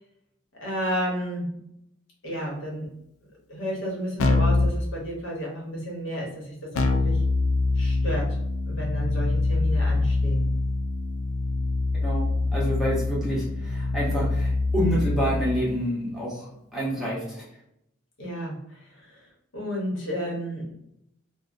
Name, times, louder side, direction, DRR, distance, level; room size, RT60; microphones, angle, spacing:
voice 1, 0.5-1.5 2.2-2.9 3.5-7.2 7.7-8.4 8.7-10.5 18.2-20.7, equal, 65° left, -3 dB, 1.0 m, -32 dB
Keyboard (musical), 4.2-4.8 6.7-15.6, left 2 dB, 90° left, 0.3 m, -24 dB
voice 2, 12.0-17.4, equal, ahead, -7 dB, 0.8 m, -28 dB
2.8 x 2.0 x 2.5 m, 0.76 s
head